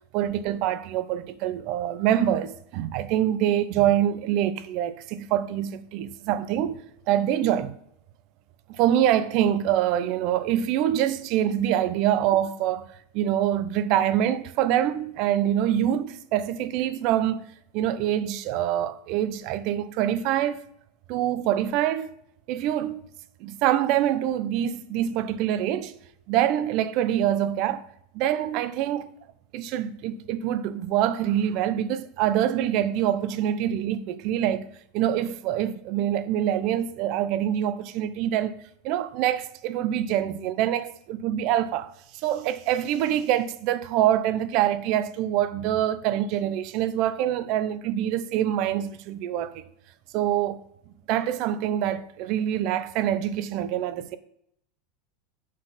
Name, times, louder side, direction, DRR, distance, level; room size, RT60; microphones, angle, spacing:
voice 1, 0.1-6.8 7.1-7.7 8.7-12.9 13.1-17.4 17.7-20.6 21.1-22.1 22.5-23.0 23.4-25.9 26.3-27.9 28.1-29.1 29.5-34.6 34.9-38.5 38.8-49.6 50.1-50.6 51.1-54.2, right 11 dB, 55° right, 0.5 m, -25 dB
6.3 x 3.9 x 5.7 m
supercardioid pair, 120°, 0 cm